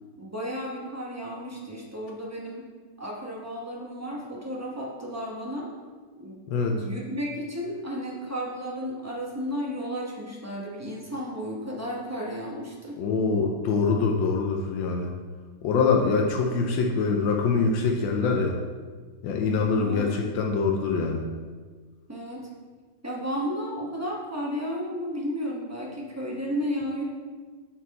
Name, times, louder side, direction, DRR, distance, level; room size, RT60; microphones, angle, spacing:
voice 1, 0.2-2.7 3.0-5.7 6.2-6.4 6.7-13.0 19.7-20.1 22.1-22.5 23.0-27.0, equal, 15° right, -3 dB, 0.5 m, -33 dB
voice 2, 6.5-6.8 13.0-15.1 15.6-18.6 19.2-21.3, left 4 dB, 90° left, 1 dB, 1.4 m, -24 dB
7.9 x 4.3 x 4.0 m, 1.5 s
omnidirectional pair, 2.0 m